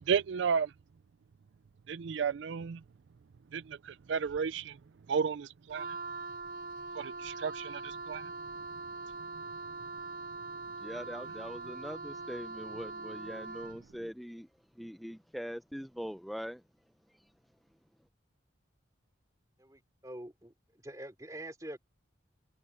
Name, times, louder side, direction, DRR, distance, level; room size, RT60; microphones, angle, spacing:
voice 1, 0.1-0.7 1.9-2.8 3.5-4.8 5.1-6.0 6.9-8.3, right 6 dB, 70° right, 0.4 m, -33 dB
Wind instrument woodwind instrument, 5.7-13.9, right 3 dB, 45° right, 1.2 m, -42 dB
voice 2, 10.8-14.5 14.8-16.6, equal, ahead, 0.5 m, -42 dB
voice 3, 19.6-20.5 20.8-21.8, right 1 dB, 15° right, 3.0 m, -45 dB
head